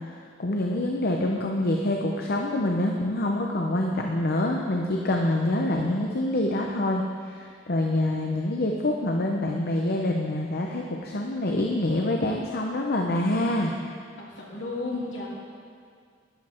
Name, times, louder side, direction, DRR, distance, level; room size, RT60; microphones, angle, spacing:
voice 1, 0.4-7.0 7.3-13.7, left 1 dB, 55° left, 1 dB, 0.8 m, -26 dB
voice 2, 14.4-15.3, left 3 dB, 70° left, -4 dB, 2.7 m, -32 dB
12.5 x 11.0 x 4.4 m, 2.1 s
head